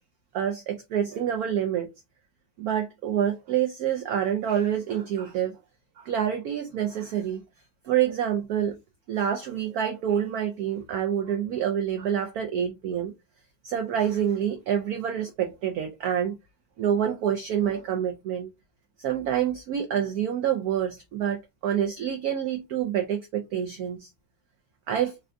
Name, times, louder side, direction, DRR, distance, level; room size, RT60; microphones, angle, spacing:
voice 1, 0.3-1.9 2.6-5.6 6.0-7.4 7.9-8.8 9.1-13.1 13.6-16.4 16.8-18.5 19.0-24.1 24.9-25.1, right 9 dB, 80° right, 0.8 m, -27 dB
3.6 x 2.2 x 2.5 m
omnidirectional pair, 2.2 m